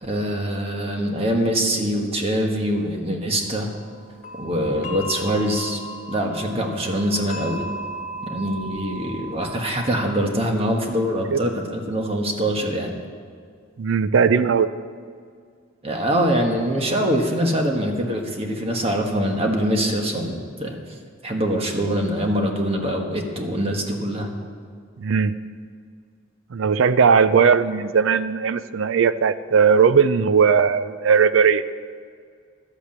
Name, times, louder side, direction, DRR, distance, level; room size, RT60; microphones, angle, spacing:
voice 1, 0.0-3.7 4.4-5.8 6.1-7.6 8.3-12.9 15.8-20.8 21.2-24.3, equal, 30° right, 2 dB, 1.4 m, -23 dB
sound 1, 3.4-10.2, equal, 40° left, 1.8 m, -36 dB
voice 2, 13.8-14.7 25.0-25.3 26.5-31.6, right 6 dB, 80° right, 14 dB, 0.4 m, -18 dB
12.0 x 8.2 x 7.3 m, 2.1 s
head